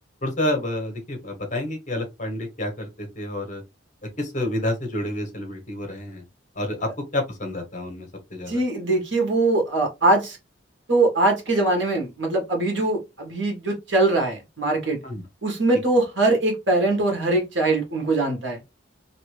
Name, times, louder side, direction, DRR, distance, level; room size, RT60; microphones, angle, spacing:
voice 1, 0.2-3.6 4.2-6.2 6.5-8.6 15.0-15.2, left 1 dB, 45° left, 1.2 m, -29 dB
voice 2, 8.5-10.4 10.9-15.0 15.4-18.6, right 2 dB, 75° right, 1.5 m, -22 dB
2.9 x 2.8 x 3.1 m
head